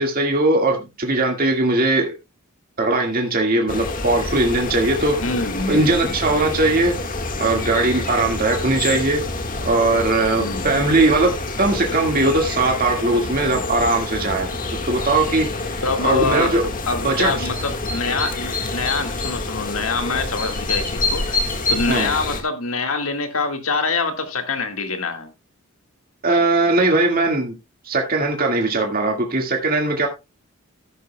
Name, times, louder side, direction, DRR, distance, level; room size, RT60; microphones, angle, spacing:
voice 1, 0.0-2.1 2.8-5.1 5.7-6.9 7.4-9.2 9.6-14.5 14.9-16.6 17.0-17.5 21.9-22.1 26.2-27.5 27.9-30.1, right 2 dB, 45° right, 1.9 m, -19 dB
sound 1, 3.7-22.4, left 2 dB, 40° left, 1.6 m, -27 dB
voice 2, 5.2-6.2 10.4-10.7 15.8-16.6 16.9-21.4 21.7-25.3, left 4 dB, 75° left, 1.8 m, -25 dB
14.0 x 11.0 x 2.2 m
head